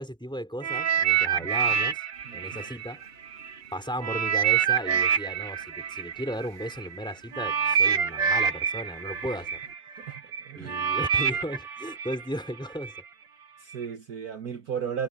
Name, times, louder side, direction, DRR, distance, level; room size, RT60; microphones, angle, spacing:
voice 1, 0.0-2.0 2.3-3.0 3.7-9.6 10.6-13.0, equal, ahead, 4.4 m, -35 dB
sound 1, 0.6-3.5 4.0-13.0 13.7-13.8, right 7 dB, 80° right, 1.8 m, -27 dB
sound 2, 2.1-9.8, right 1 dB, 35° right, 8.0 m, -58 dB
voice 2, 2.3-2.7 10.0-10.9 13.6-15.1, right 7 dB, 60° right, 1.8 m, -35 dB
omnidirectional pair, 1.9 m